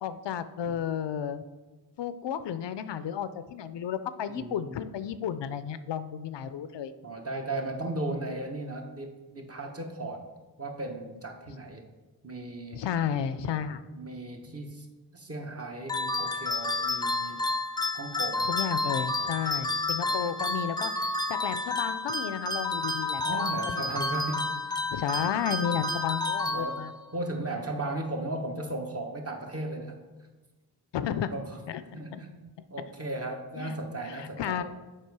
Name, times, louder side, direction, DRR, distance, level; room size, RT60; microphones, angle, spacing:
voice 1, 0.0-1.4 2.0-6.9 12.7-13.8 18.5-23.9 24.9-26.9 30.9-31.3 31.7-32.2 33.6-33.8 34.1-34.6, left 8 dB, 85° left, 13 dB, 0.5 m, -32 dB
voice 2, 4.3-4.7 7.0-10.3 10.6-11.9 12.2-12.8 13.9-14.9 15.1-17.4 17.9-18.5 19.2-19.7 20.1-20.2 23.2-24.4 26.5-26.9 27.1-30.0 31.3-31.6 31.9-32.4 32.7-34.6, right 2 dB, 35° right, 3 dB, 1.1 m, -36 dB
sound 1, 15.9-27.1, left 2 dB, 10° left, 0.5 m, -30 dB
7.4 x 4.9 x 4.7 m, 1.2 s
wide cardioid pair, 70°, 42 cm